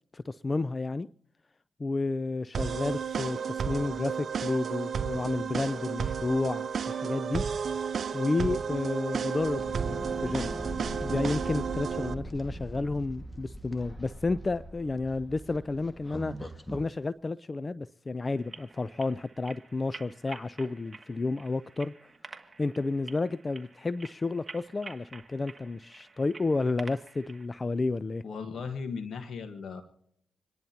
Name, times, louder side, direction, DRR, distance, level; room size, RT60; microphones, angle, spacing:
voice 1, 0.1-1.1 1.8-7.4 8.1-10.5 11.0-16.3 16.7-22.1 22.6-28.2, left 3 dB, 35° left, 0.4 m, -31 dB
sound 1, 2.5-12.1, right 6 dB, 60° right, 0.8 m, -32 dB
sound 2, 9.3-16.9, right 1 dB, 15° left, 1.7 m, -40 dB
sound 3, 18.3-27.5, right 3 dB, 30° right, 2.0 m, -49 dB
voice 2, 28.2-29.8, left 5 dB, 65° left, 1.3 m, -37 dB
27.0 x 10.5 x 2.8 m
supercardioid pair, 55°, 0 cm